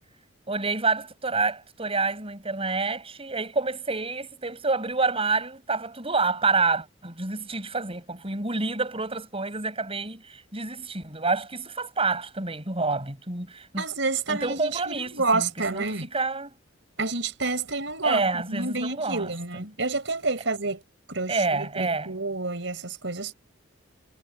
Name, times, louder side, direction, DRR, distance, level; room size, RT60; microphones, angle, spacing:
voice 1, 0.5-13.8 14.3-16.5 18.0-19.6 21.3-22.1, right 3 dB, 30° right, 7.4 m, -28 dB
voice 2, 13.8-16.1 17.0-18.2 18.5-20.8 21.1-23.3, right 3 dB, 70° right, 5.2 m, -29 dB
head